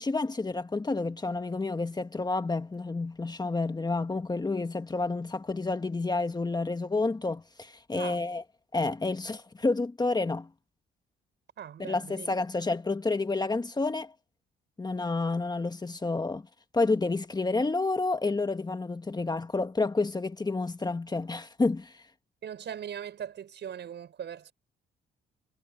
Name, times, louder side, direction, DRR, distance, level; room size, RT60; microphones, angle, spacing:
voice 1, 0.0-8.4 8.7-10.5 11.8-14.1 14.8-16.4 16.7-22.0, left 3 dB, 20° left, 1.5 m, -29 dB
voice 2, 11.6-12.3 22.4-24.5, right 9 dB, 60° right, 5.2 m, -40 dB
cardioid pair, 90°, 20 cm